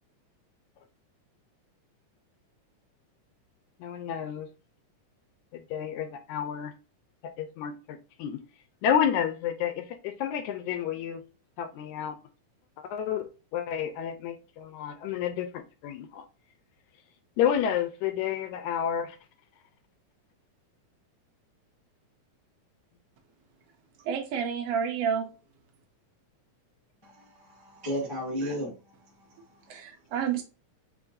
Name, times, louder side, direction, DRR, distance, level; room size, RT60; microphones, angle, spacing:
voice 1, 3.8-4.5 5.5-6.7 7.4-8.4 8.8-11.2 11.6-12.2 12.8-13.2 13.5-16.2 17.4-19.2, left 9 dB, 80° left, 1.8 m, -30 dB
voice 2, 24.0-25.3 29.7-30.4, right 7 dB, 75° right, 1.4 m, -29 dB
voice 3, 27.0-29.7, equal, 45° left, 0.3 m, -35 dB
6.0 x 3.3 x 2.5 m
omnidirectional pair, 3.7 m